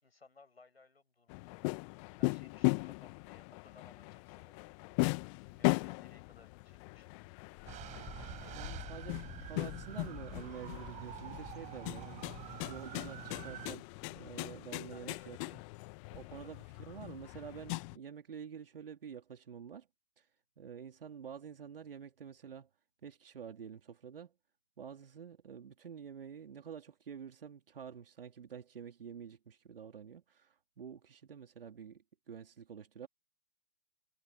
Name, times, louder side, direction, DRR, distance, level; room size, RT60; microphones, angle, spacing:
voice 1, 0.0-1.8 2.2-4.6 5.4-7.4 14.9-15.6 16.4-16.5, left 3 dB, 80° left, 7.2 m, -61 dB
sound 1, 1.3-18.0, left 31 dB, 30° left, 1.5 m, -38 dB
sound 2, 7.7-13.7, right 15 dB, 25° right, 4.9 m, -47 dB
voice 2, 8.5-15.6 16.1-19.9 20.2-20.3 20.6-22.7 23.0-24.3 24.8-33.1, right 7 dB, 65° right, 3.4 m, -48 dB
figure-of-eight pair, 120°, 30 cm